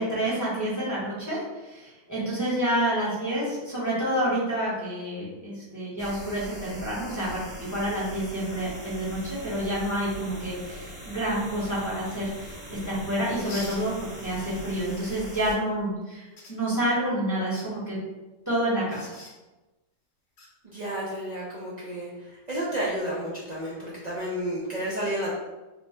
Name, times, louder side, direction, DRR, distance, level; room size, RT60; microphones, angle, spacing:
voice 1, 0.0-18.0 18.5-19.2, right 1 dB, 15° left, -8 dB, 0.7 m, -29 dB
sound 1, 6.0-15.5, equal, 30° right, 1.1 m, -41 dB
sound 2, 13.4-13.8 15.3-15.4 16.4-16.5 17.4-17.7 18.9-19.3 20.4-20.5 22.5-22.7, left 2 dB, 50° left, 0.6 m, -42 dB
voice 2, 20.6-25.4, right 1 dB, 80° right, -7 dB, 0.3 m, -31 dB
3.0 x 2.1 x 4.2 m, 1.1 s
omnidirectional pair, 1.6 m